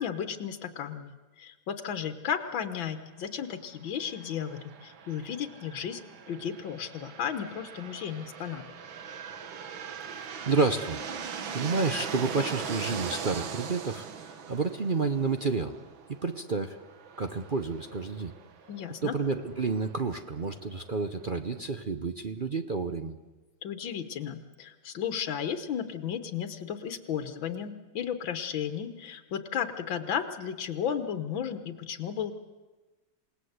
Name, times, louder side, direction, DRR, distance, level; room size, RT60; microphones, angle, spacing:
voice 1, 0.0-6.0 6.3-8.6 18.7-19.2 23.6-32.3, left 8 dB, 80° left, 9 dB, 1.9 m, -34 dB
sound 1, 4.0-21.6, right 6 dB, 80° right, 2.1 m, -41 dB
voice 2, 10.1-11.0 11.5-15.8 16.1-16.8 17.2-18.3 19.0-23.1, right 4 dB, 50° right, 8 dB, 0.6 m, -30 dB
27.5 x 18.5 x 8.1 m, 1.2 s
omnidirectional pair, 2.1 m